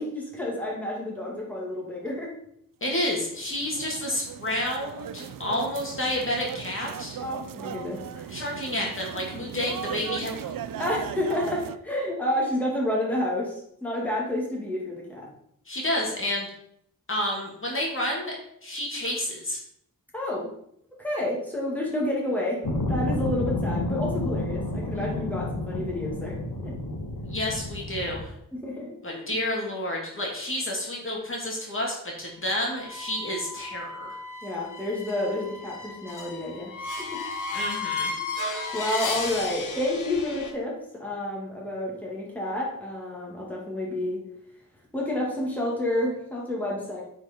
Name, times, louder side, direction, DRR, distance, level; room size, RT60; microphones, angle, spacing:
voice 1, 0.0-2.3 7.2-8.4 10.8-15.3 20.1-20.5 21.0-26.3 26.6-26.7 28.6-29.3 34.4-37.2 38.7-44.2 44.9-47.0, left 1 dB, 5° left, -4 dB, 2.2 m, -30 dB
voice 2, 2.8-7.2 8.3-10.5 15.7-16.5 17.1-18.3 18.6-19.6 27.2-28.3 29.0-34.2 37.5-38.1, left 1 dB, 35° left, -2 dB, 2.1 m, -30 dB
sound 1, 3.1-11.8, right 9 dB, 70° right, 0.5 m, -37 dB
sound 2, 22.6-28.2, left 2 dB, 80° left, 1.6 m, -30 dB
sound 3, 32.8-40.5, left 3 dB, 60° left, 1.4 m, -34 dB
9.3 x 4.7 x 4.4 m, 0.72 s
wide cardioid pair, 120°, 35 cm